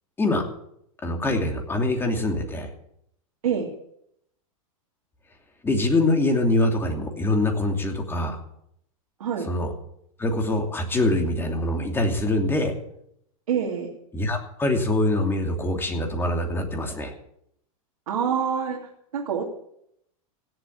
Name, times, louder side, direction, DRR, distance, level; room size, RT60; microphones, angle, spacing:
voice 1, 1.0-2.7 5.6-8.4 9.4-9.7 10.2-12.7 14.1-17.1, left 2 dB, 10° left, 3 dB, 2.8 m, -24 dB
voice 2, 13.5-13.9 18.1-18.8 19.1-19.5, right 7 dB, 90° right, -2 dB, 2.8 m, -25 dB
16.5 x 7.7 x 9.2 m, 0.74 s
hypercardioid pair, 135°, 18 cm